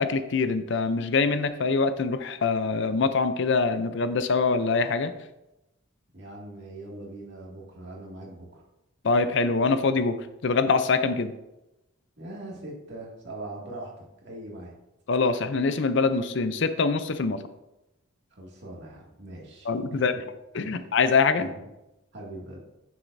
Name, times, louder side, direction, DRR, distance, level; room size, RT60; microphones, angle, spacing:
voice 1, 0.0-5.1 9.0-10.2 10.4-11.3 15.1-17.4 19.7-20.1 20.5-21.5, left 4 dB, 60° left, 11 dB, 0.5 m, -24 dB
voice 2, 6.1-8.6 12.2-14.7 18.3-20.2 20.6-20.9 21.4-21.6 22.1-22.6, right 1 dB, 55° right, -3 dB, 2.2 m, -41 dB
9.1 x 7.1 x 2.6 m, 0.93 s
head